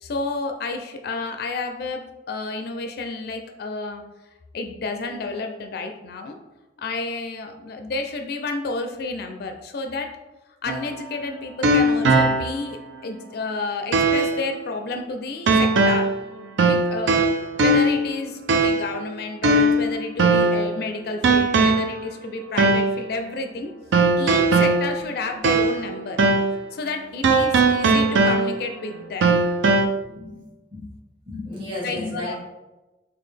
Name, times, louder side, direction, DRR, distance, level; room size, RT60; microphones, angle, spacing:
voice 1, 0.0-4.0 4.5-6.4 6.8-10.1 10.6-16.1 16.6-17.2 17.6-23.7 24.2-26.2 26.7-29.3 31.8-32.4, left 3 dB, 60° left, 5 dB, 0.4 m, -30 dB
sound 1, 10.7-12.7 13.1-13.2 13.9-14.4 15.5-16.2 16.6-18.1 18.5-19.0 19.4-20.7 21.2-22.0 22.6-23.0 23.9-25.9 26.2-26.6 27.2-28.7 29.2-29.9, right 2 dB, 90° right, 0.4 m, -19 dB
voice 2, 30.0-30.4 30.7-30.8 31.3-32.4, left 1 dB, 30° right, -7 dB, 1.3 m, -33 dB
3.9 x 2.3 x 3.3 m, 1.1 s
head